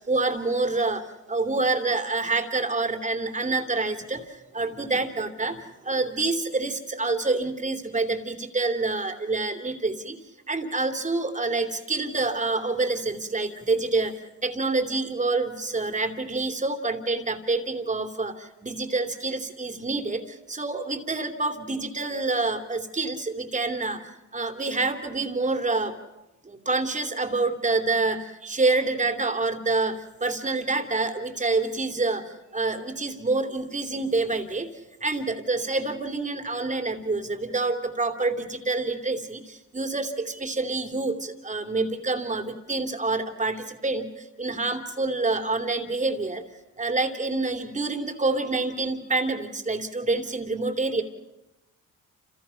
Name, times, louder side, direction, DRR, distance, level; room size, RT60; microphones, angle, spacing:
voice 1, 0.1-1.0 1.3-10.2 10.5-14.1 14.4-20.2 20.5-24.0 24.3-25.9 26.4-32.2 32.5-34.7 35.0-44.1 44.4-46.4 46.8-51.0, right 3 dB, 25° right, 6 dB, 3.0 m, -27 dB
29.5 x 28.5 x 5.8 m, 0.94 s
cardioid pair, 90°, 30 cm